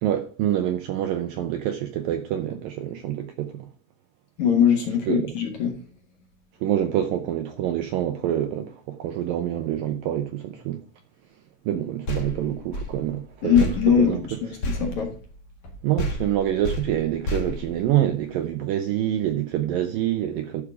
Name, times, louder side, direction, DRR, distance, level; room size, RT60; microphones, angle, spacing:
voice 1, 0.0-3.7 5.1-5.3 6.6-10.8 11.7-14.2 15.8-20.6, right 11 dB, 75° right, 2.1 m, -26 dB
voice 2, 4.4-5.7 13.4-15.1, left 8 dB, 55° left, 2.4 m, -21 dB
sound 1, 12.0-15.7 16.0-18.4, left 1 dB, 90° left, 0.9 m, -32 dB
12.0 x 5.0 x 4.9 m
omnidirectional pair, 4.9 m